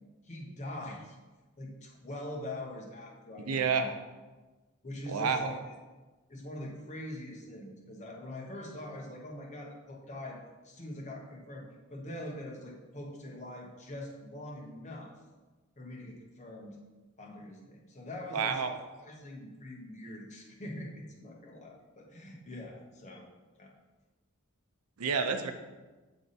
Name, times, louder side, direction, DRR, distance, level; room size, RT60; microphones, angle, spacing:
voice 1, 0.2-1.2 1.6-3.9 4.8-5.6 6.3-15.2 15.8-16.8 17.2-18.6 19.0-23.2 23.6-23.7, left 1 dB, 35° left, -1 dB, 1.0 m, -43 dB
voice 2, 3.5-3.9 5.1-5.5 18.3-18.7 25.0-25.5, right 5 dB, 90° right, 7 dB, 0.6 m, -29 dB
7.6 x 3.5 x 4.1 m, 1.2 s
head